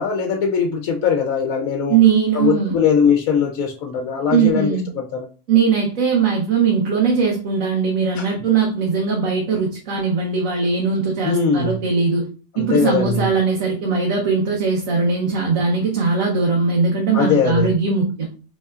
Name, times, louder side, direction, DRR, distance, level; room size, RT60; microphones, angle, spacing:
voice 1, 0.0-2.0 2.3-4.7 4.9-5.3 8.2-8.3 11.2-11.8 12.5-13.3 17.1-17.7, left 6 dB, 80° left, 4 dB, 1.1 m, -20 dB
voice 2, 1.9-2.8 4.3-4.9 5.5-12.2 12.6-18.3, right 5 dB, 70° right, 0 dB, 1.4 m, -19 dB
5.3 x 3.5 x 2.4 m, 0.36 s
omnidirectional pair, 1.4 m